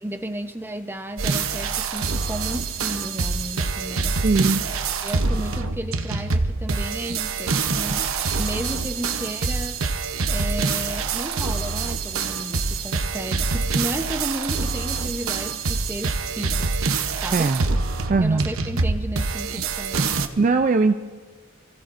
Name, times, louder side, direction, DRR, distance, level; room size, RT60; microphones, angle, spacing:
voice 1, 0.0-4.2 5.0-9.9 10.3-16.7 17.2-17.5 18.2-20.2, right 1 dB, 10° right, 5 dB, 0.8 m, -33 dB
sound 1, 1.2-20.3, right 4 dB, 85° right, 0.9 m, -25 dB
voice 2, 4.2-4.9 17.3-17.6 18.1-18.5 20.4-21.0, right 3 dB, 40° right, 7 dB, 0.4 m, -20 dB
28.0 x 15.5 x 2.6 m, 1.5 s
head